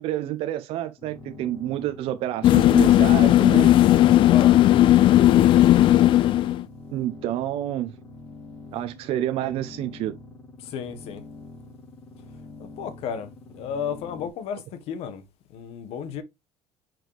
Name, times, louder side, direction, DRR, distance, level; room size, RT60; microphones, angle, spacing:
voice 1, 0.0-3.7 6.9-7.9 8.7-10.2, right 13 dB, 60° right, 0.7 m, -29 dB
sound 1, 1.0-14.3, left 3 dB, 15° left, 2.4 m, -45 dB
sound 2, 2.4-6.6, left 13 dB, 50° left, 0.5 m, -16 dB
voice 2, 10.6-11.2 12.6-15.2 15.5-16.2, left 7 dB, 65° left, 1.3 m, -33 dB
6.0 x 4.8 x 3.3 m
cardioid pair, 135°, 11 cm